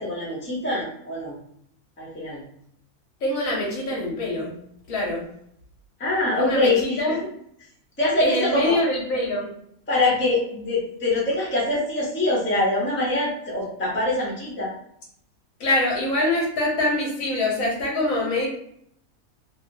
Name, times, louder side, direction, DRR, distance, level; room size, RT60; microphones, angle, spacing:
voice 1, 0.0-1.4 2.0-2.4 6.0-7.2 8.0-8.8 9.9-14.7, left 2 dB, 10° left, -6 dB, 0.7 m, -24 dB
voice 2, 3.2-4.6 4.9-5.2 6.4-6.7 7.0-7.2 8.2-9.5 15.6-18.5, left 1 dB, 65° left, -2 dB, 1.2 m, -24 dB
2.8 x 2.3 x 2.7 m, 0.70 s
omnidirectional pair, 1.5 m